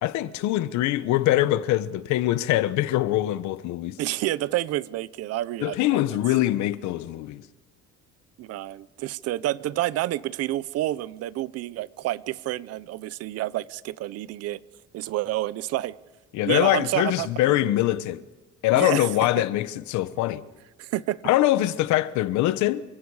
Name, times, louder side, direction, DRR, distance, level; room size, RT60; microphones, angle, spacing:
voice 1, 0.0-4.0 5.6-7.4 16.3-18.2 18.6-20.4 21.2-22.8, left 15 dB, 75° left, 1.2 m, -23 dB
voice 2, 4.0-6.2 8.4-14.6 14.9-16.0 16.5-17.6 18.7-19.1 20.8-21.2, right 15 dB, 55° right, 0.7 m, -29 dB
29.0 x 25.0 x 4.9 m
cardioid pair, 175°, 29 cm